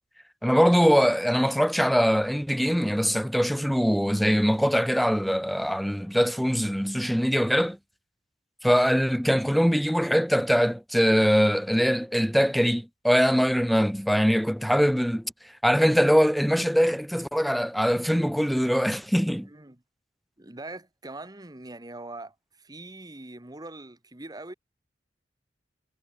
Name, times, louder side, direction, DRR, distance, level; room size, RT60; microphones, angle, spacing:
voice 1, 0.4-7.8 8.6-15.2 15.6-19.5, equal, ahead, 0.7 m, -22 dB
voice 2, 19.4-19.8 20.4-24.5, right 2 dB, 20° right, 1.5 m, -42 dB
head